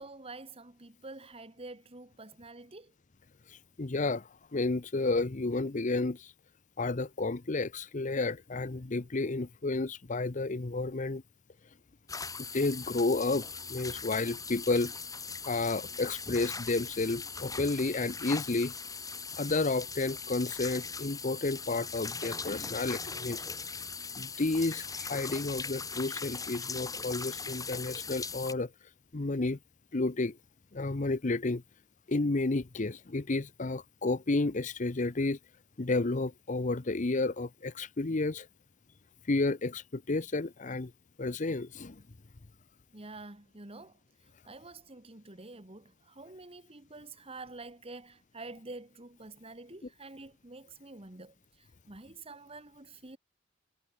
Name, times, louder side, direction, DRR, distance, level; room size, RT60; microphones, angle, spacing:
voice 1, 0.0-2.9 42.9-43.9 44.5-51.3 51.9-53.2, right 2 dB, 30° right, 2.0 m, -47 dB
voice 2, 3.8-6.3 6.8-11.2 12.5-14.9 15.5-18.7 19.4-23.4 24.2-28.7 29.1-29.6 29.9-30.4 30.7-31.6 32.1-35.4 35.8-38.5 39.3-40.9 41.2-42.0, left 3 dB, 40° left, 0.8 m, -31 dB
sound 1, 12.1-28.5, left 5 dB, 20° left, 3.9 m, -40 dB
head